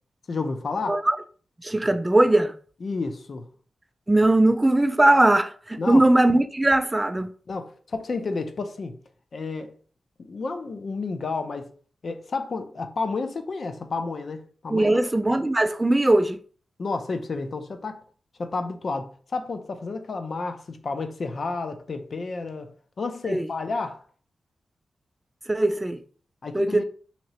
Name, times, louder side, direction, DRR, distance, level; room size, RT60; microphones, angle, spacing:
voice 1, 0.3-1.0 2.8-3.5 5.8-6.0 7.5-8.9 9.3-9.7 10.2-11.7 12.0-15.0 16.8-18.0 18.4-24.0 26.4-26.8, left 3 dB, 55° left, 0.5 m, -31 dB
voice 2, 1.6-2.5 4.1-7.3 14.7-16.4 23.3-23.5 25.5-26.0 26.5-26.8, right 1 dB, 15° right, 0.3 m, -20 dB
2.9 x 2.8 x 4.1 m
wide cardioid pair, 110°, 0 cm